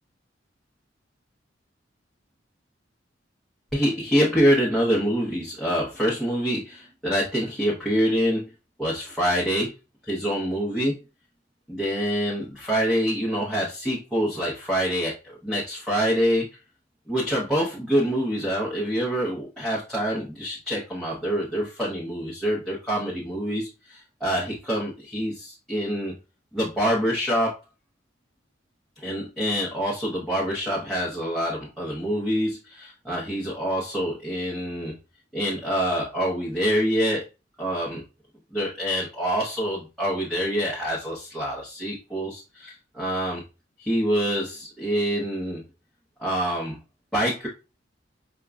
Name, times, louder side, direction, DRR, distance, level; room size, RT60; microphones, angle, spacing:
voice 1, 3.7-8.5 8.8-9.7 10.0-11.0 11.7-16.5 17.1-26.1 26.5-27.6 29.0-35.0 35.3-37.2 37.6-38.0 38.5-43.4 43.8-45.6 46.2-46.8 47.1-47.5, equal, 5° left, -7 dB, 0.7 m, -26 dB
4.9 x 2.2 x 2.3 m, 0.29 s
head